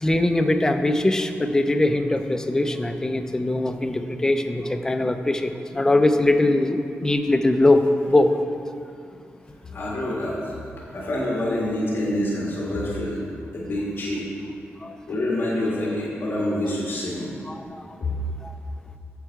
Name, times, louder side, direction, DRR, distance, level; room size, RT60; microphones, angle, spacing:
voice 1, 0.0-7.8 8.1-8.3 14.8-15.0 17.5-17.8 18.4-18.5, left 2 dB, 15° left, 7 dB, 0.4 m, -21 dB
voice 2, 9.7-10.5 10.9-13.2 13.5-14.3 15.1-17.3 18.0-18.1, left 1 dB, 50° left, -5 dB, 1.7 m, -26 dB
8.1 x 7.7 x 4.6 m, 2.3 s
wide cardioid pair, 150°, 5 cm